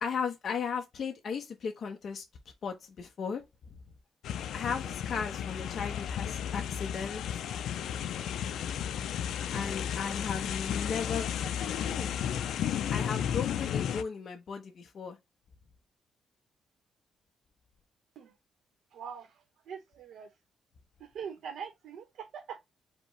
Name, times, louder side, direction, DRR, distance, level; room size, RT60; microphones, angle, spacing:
voice 1, 0.0-2.2 2.6-3.4 4.5-7.2 9.5-11.3 11.8-12.2 12.9-15.2, left 6 dB, 45° left, 0.8 m, -36 dB
sound 1, 4.2-14.0, left 9 dB, 85° left, 0.4 m, -33 dB
voice 2, 18.9-20.3 21.0-22.6, right 7 dB, 75° right, 1.0 m, -43 dB
5.1 x 2.2 x 4.6 m
wide cardioid pair, 170°, 0 cm